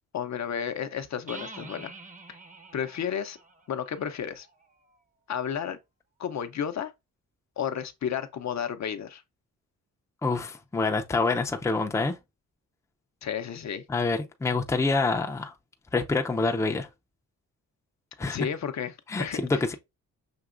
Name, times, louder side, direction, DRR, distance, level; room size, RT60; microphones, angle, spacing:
voice 1, 0.1-1.9 2.3-2.4 2.7-3.4 3.7-4.5 5.3-5.8 6.2-6.9 7.6-9.2 13.2-13.8 18.3-19.6, left 8 dB, 50° left, 0.6 m, -32 dB
sound 1, 1.3-4.9, right 2 dB, 20° right, 0.7 m, -46 dB
voice 2, 10.2-12.2 13.9-15.5 15.9-16.9 18.2-18.4 19.1-19.7, left 3 dB, 10° left, 0.5 m, -26 dB
6.0 x 2.8 x 2.5 m
cardioid pair, 90°, 34 cm